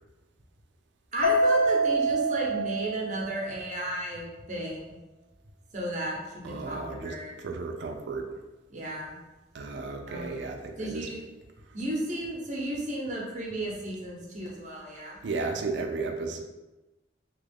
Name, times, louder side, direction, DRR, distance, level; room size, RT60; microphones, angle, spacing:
voice 1, 1.1-4.9 5.7-7.3 8.7-9.2 10.1-10.4 10.8-11.2 11.7-15.2, right 1 dB, 40° right, -3 dB, 0.7 m, -34 dB
Mallet percussion, 1.2-3.7, right 2 dB, 90° left, 0.4 m, -26 dB
voice 2, 6.4-8.4 9.5-11.1 15.2-16.4, right 3 dB, 65° right, 4 dB, 0.4 m, -34 dB
2.9 x 2.3 x 3.4 m, 1.1 s
head